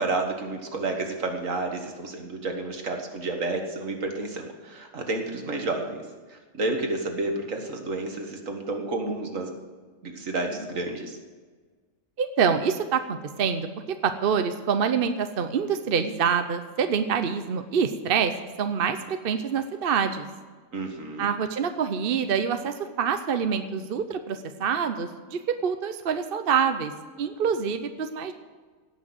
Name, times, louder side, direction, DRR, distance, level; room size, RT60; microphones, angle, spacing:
voice 1, 0.0-6.0 6.3-9.6 10.0-11.2 20.7-21.3, right 2 dB, 70° right, 3 dB, 2.1 m, -30 dB
voice 2, 12.2-18.3 18.6-20.3 21.2-26.9 27.2-28.3, right 6 dB, 50° right, 8 dB, 0.8 m, -26 dB
17.0 x 6.3 x 7.8 m, 1.4 s
omnidirectional pair, 1.4 m